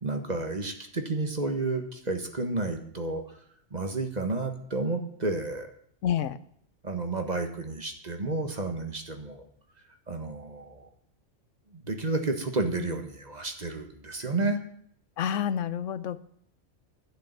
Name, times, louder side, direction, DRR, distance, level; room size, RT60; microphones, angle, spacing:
voice 1, 0.0-3.2 3.7-5.7 6.8-9.4 10.1-10.9 11.7-14.6, right 2 dB, 35° right, 5 dB, 1.5 m, -31 dB
voice 2, 6.0-6.4 15.2-16.2, left 9 dB, 90° left, 15 dB, 1.1 m, -28 dB
12.0 x 6.7 x 9.3 m, 0.65 s
omnidirectional pair, 1.2 m